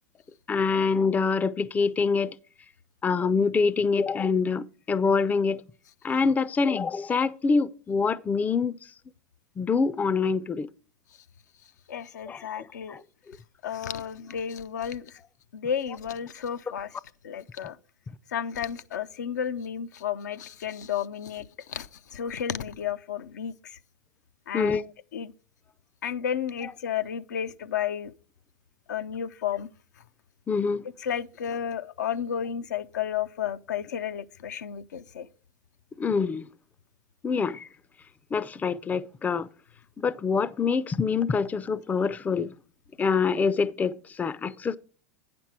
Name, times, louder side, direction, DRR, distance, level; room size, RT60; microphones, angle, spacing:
voice 1, 0.5-2.3 3.0-5.6 6.0-8.8 9.6-10.7 12.3-13.0 24.5-24.8 30.5-30.8 36.0-36.5 37.2-37.7 38.3-39.5 40.0-42.5 43.0-43.9 44.2-44.8, left 5 dB, 15° left, 0.4 m, -25 dB
voice 2, 11.9-13.0 13.6-15.1 15.5-16.9 17.2-17.8 18.3-23.8 24.5-24.9 25.1-25.3 26.0-28.1 28.9-29.7 31.0-35.3, left 8 dB, 80° left, 0.4 m, -32 dB
9.3 x 6.0 x 4.7 m
hypercardioid pair, 90°, 9 cm